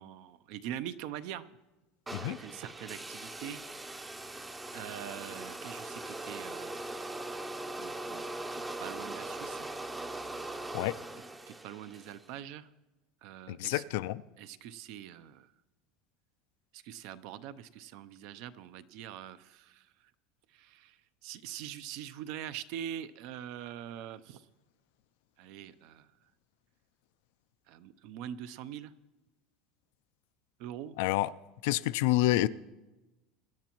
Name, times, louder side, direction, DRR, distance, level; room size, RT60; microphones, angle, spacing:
voice 1, 0.0-1.4 2.2-4.3 4.7-7.0 7.8-8.2 8.5-9.7 10.7-10.8 11.5-12.7 13.2-13.8 14.4-15.5 16.7-19.9 20.5-24.5 25.4-26.1 27.7-28.9 30.6-31.0, right 10 dB, 60° right, 0.5 m, -44 dB
sound 1, 2.1-12.2, right 2 dB, 10° right, 0.6 m, -41 dB
voice 2, 13.5-14.2 31.0-31.3 31.6-32.5, left 16 dB, 75° left, 0.4 m, -28 dB
23.5 x 10.5 x 3.0 m
supercardioid pair, 150°, 0 cm